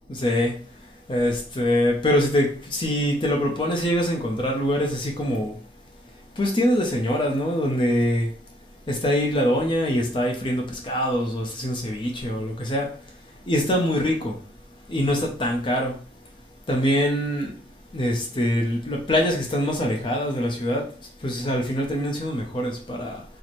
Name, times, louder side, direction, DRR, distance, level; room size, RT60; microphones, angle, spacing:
voice 1, 0.1-0.8 1.1-5.6 6.4-8.3 8.9-13.0 13.5-14.4 14.9-16.0 16.7-17.6 17.9-23.2, equal, 30° left, 0.5 m, -24 dB
4.1 x 2.0 x 3.0 m
head